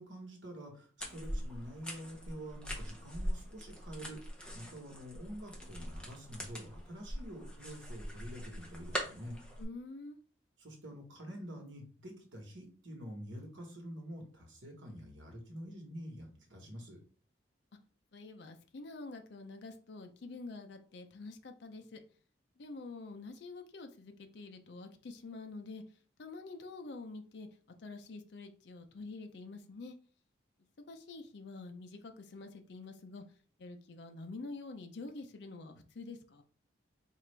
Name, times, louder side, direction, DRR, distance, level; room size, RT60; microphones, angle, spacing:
voice 1, 0.0-9.4 10.6-17.0, equal, 85° right, 2 dB, 1.3 m, -47 dB
sound 1, 1.0-9.6, equal, 5° left, 0.7 m, -42 dB
voice 2, 9.6-10.2 18.1-22.0 22.6-25.8 26.2-27.5 27.8-29.9 30.9-33.2 33.6-36.4, left 3 dB, 65° left, 6 dB, 0.5 m, -47 dB
4.7 x 2.4 x 3.3 m, 0.42 s
head